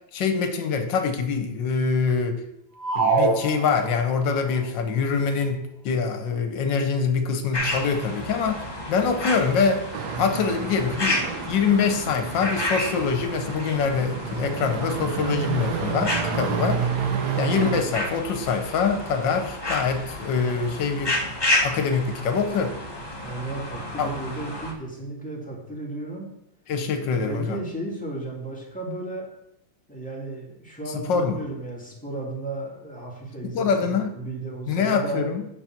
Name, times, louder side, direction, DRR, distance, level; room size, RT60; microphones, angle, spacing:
voice 1, 0.1-2.4 2.9-9.9 10.2-16.9 17.4-21.2 21.6-22.8 24.0-24.1 26.7-27.6 30.9-31.4 33.4-34.1 34.7-35.4, left 5 dB, 75° left, 7 dB, 1.5 m, -24 dB
sound 1, 2.8-4.3, right 4 dB, 80° right, 1.9 m, -24 dB
sound 2, 7.5-24.7, left 1 dB, 25° left, 0.5 m, -31 dB
sound 3, 9.9-17.8, right 7 dB, 65° right, 1.2 m, -30 dB
voice 2, 23.2-26.3 27.0-29.3 29.9-35.2, right 2 dB, 5° left, -4 dB, 1.9 m, -34 dB
8.7 x 4.2 x 5.8 m, 0.82 s
omnidirectional pair, 2.0 m